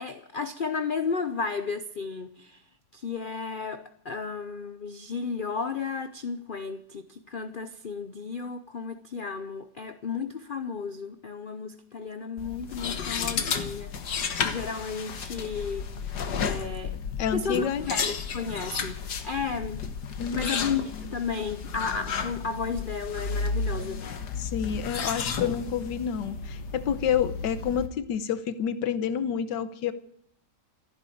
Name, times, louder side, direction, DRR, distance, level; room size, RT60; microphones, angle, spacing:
voice 1, 0.0-2.6 2.9-13.9 14.4-17.0 17.3-19.9 20.3-24.0, left 5 dB, 55° left, 0.6 m, -33 dB
sound 1, 12.4-27.9, left 5 dB, 70° left, 1.9 m, -33 dB
voice 2, 17.2-17.8 20.2-20.5 24.4-29.9, left 8 dB, 85° left, 1.5 m, -29 dB
14.5 x 10.5 x 8.5 m
omnidirectional pair, 1.9 m